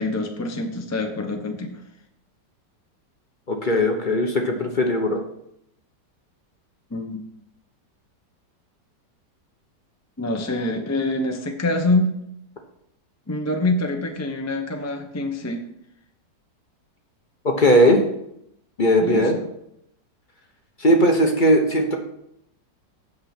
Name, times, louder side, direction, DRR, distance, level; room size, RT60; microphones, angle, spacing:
voice 1, 0.0-1.8 6.9-7.2 10.2-12.1 13.3-15.6 19.0-19.3, left 2 dB, 15° left, 4 dB, 0.5 m, -25 dB
voice 2, 3.5-5.2 17.4-18.0 18.8-19.4 20.8-22.0, equal, 35° left, 3 dB, 0.9 m, -18 dB
8.7 x 6.7 x 5.9 m, 0.76 s
omnidirectional pair, 1.9 m